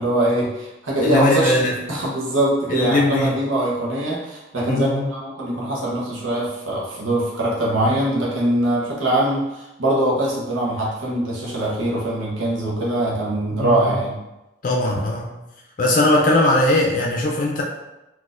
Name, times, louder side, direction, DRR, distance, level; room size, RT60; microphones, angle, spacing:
voice 1, 0.0-1.6 1.9-14.2, right 1 dB, 90° right, -5 dB, 0.8 m, -22 dB
voice 2, 1.0-1.8 2.7-3.4 4.7-5.1 13.5-14.0 14.6-15.3 15.8-17.6, left 1 dB, 40° left, -1 dB, 0.4 m, -20 dB
4.0 x 2.4 x 2.5 m, 0.97 s
head